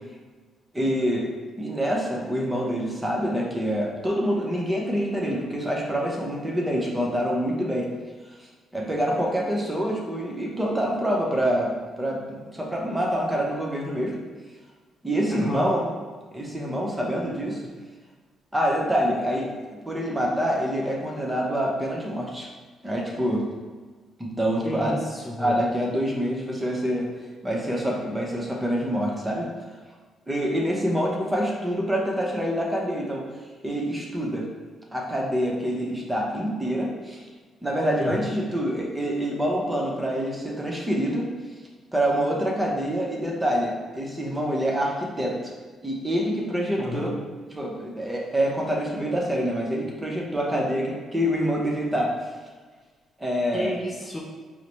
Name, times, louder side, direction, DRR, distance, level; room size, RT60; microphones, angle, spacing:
voice 1, 0.7-1.3 1.6-7.9 8.4-11.7 12.0-14.2 15.0-15.9 16.3-17.6 18.5-22.5 22.8-23.4 24.2-25.0 25.4-27.1 27.4-29.5 30.3-33.2 33.6-34.5 34.9-37.2 37.6-41.3 41.9-45.5 45.8-47.2 47.5-52.1 53.2-53.7, equal, 15° right, -2 dB, 0.8 m, -26 dB
voice 2, 15.3-15.7 24.6-25.6 38.0-38.3 46.8-47.1 53.5-54.2, left 2 dB, 20° left, -3 dB, 0.5 m, -32 dB
4.8 x 2.1 x 2.9 m, 1.4 s
cardioid pair, 90°, 0 cm